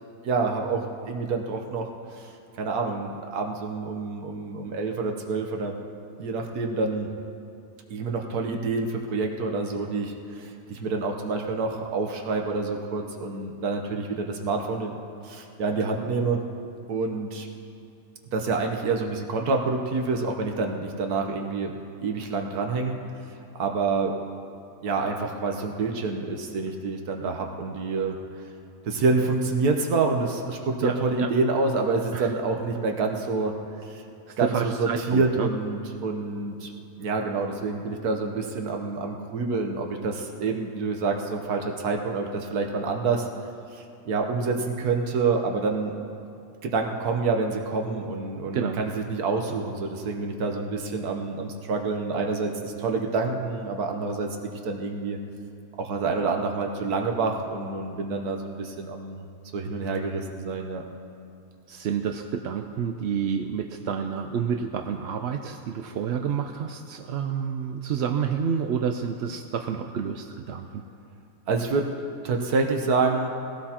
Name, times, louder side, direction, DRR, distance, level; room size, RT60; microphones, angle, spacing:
voice 1, 0.2-2.3 2.6-5.8 6.2-7.1 7.9-14.9 15.2-16.4 16.9-17.5 18.3-21.7 22.0-23.0 23.6-24.1 24.8-28.1 28.8-33.5 33.8-34.0 34.4-36.7 37.0-43.3 43.7-45.9 46.6-55.2 55.8-59.2 59.5-60.8 71.5-71.9 72.2-73.3, right 3 dB, 85° right, 2 dB, 1.5 m, -27 dB
voice 2, 30.8-31.3 32.1-32.3 34.3-35.5 48.5-48.8 61.7-70.8, right 7 dB, 65° right, 5 dB, 0.7 m, -29 dB
21.0 x 16.5 x 2.9 m, 2.6 s
omnidirectional pair, 1.6 m